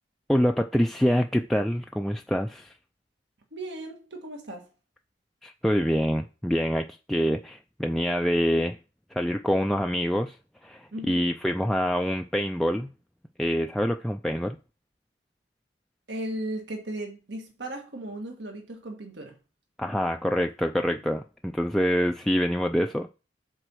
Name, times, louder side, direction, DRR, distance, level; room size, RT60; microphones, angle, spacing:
voice 1, 0.3-2.7 5.4-8.8 9.1-10.4 10.6-12.9 13.4-14.6 19.8-23.1, equal, ahead, 0.3 m, -26 dB
voice 2, 3.5-4.6 10.9-11.3 16.1-19.3, right 1 dB, 75° right, 1.6 m, -36 dB
7.8 x 4.2 x 6.2 m
head